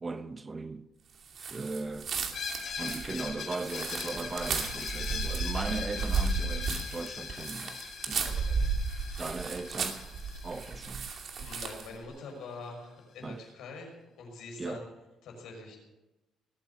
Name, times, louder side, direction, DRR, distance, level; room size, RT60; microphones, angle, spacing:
voice 1, 0.0-0.9 1.4-2.1 2.8-8.3 9.2-10.0 10.4-11.2 13.2-13.4 14.6-14.9, right 3 dB, 20° right, 0.6 m, -38 dB
sound 1, 1.3-12.0, right 5 dB, 50° right, 2.6 m, -34 dB
Screech, 2.3-11.9, left 6 dB, 55° left, 4.8 m, -40 dB
voice 2, 8.2-8.6 11.3-14.9 15.2-15.8, left 3 dB, 75° left, 6.3 m, -45 dB
19.5 x 9.0 x 7.2 m
cardioid pair, 125°, 0 cm